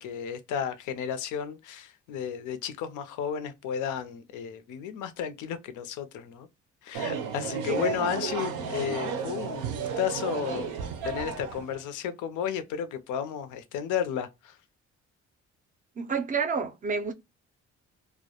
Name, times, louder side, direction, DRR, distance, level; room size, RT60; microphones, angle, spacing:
voice 1, 0.0-6.5 6.8-14.6, left 8 dB, 85° left, 0.5 m, -33 dB
sound 1, 6.9-11.8, right 6 dB, 90° right, 0.5 m, -33 dB
voice 2, 16.0-17.1, right 5 dB, 30° right, 0.4 m, -29 dB
2.1 x 2.0 x 2.7 m
cardioid pair, 90°, 30 cm